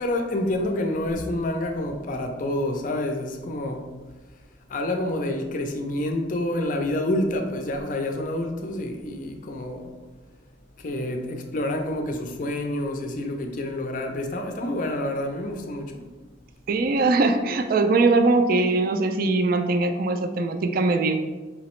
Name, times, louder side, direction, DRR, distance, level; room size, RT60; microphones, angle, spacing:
voice 1, 0.0-3.8 4.7-9.9 10.8-16.0, left 1 dB, 40° left, 0.4 m, -28 dB
voice 2, 16.7-21.1, right 3 dB, 50° right, 0.3 m, -21 dB
4.9 x 2.9 x 3.0 m
head